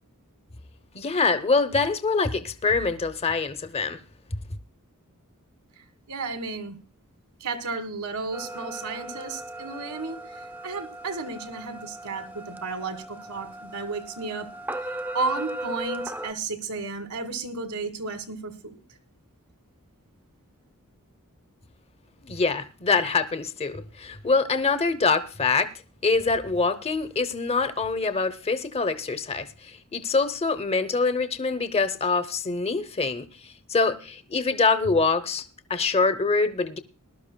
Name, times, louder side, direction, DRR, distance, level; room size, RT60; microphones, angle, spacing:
voice 1, 0.9-4.0 22.2-25.7 26.0-35.4 35.7-36.8, left 4 dB, 25° left, 0.7 m, -25 dB
voice 2, 5.8-6.8 7.4-14.5 14.8-18.8, right 3 dB, 85° right, 1.7 m, -33 dB
bells warble, 8.3-16.3, right 1 dB, 10° right, 0.6 m, -37 dB
20.0 x 12.0 x 2.2 m
head